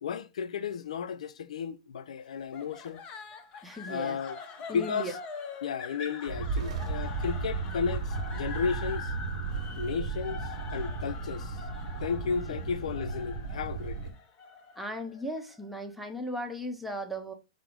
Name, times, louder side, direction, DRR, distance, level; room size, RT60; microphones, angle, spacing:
voice 1, 0.0-3.0 3.9-4.4 4.7-5.2 5.6-9.1 9.8-11.6 12.0-14.1, left 6 dB, 85° left, 0.3 m, -34 dB
sound 1, 2.5-15.7, left 5 dB, 30° left, 0.7 m, -44 dB
voice 2, 3.6-4.2 4.7-5.1 12.4-12.6 14.8-17.3, equal, ahead, 0.7 m, -37 dB
sound 2, 6.3-14.1, right 4 dB, 80° right, 1.0 m, -35 dB
4.9 x 2.0 x 4.5 m
hypercardioid pair, 135°, 3 cm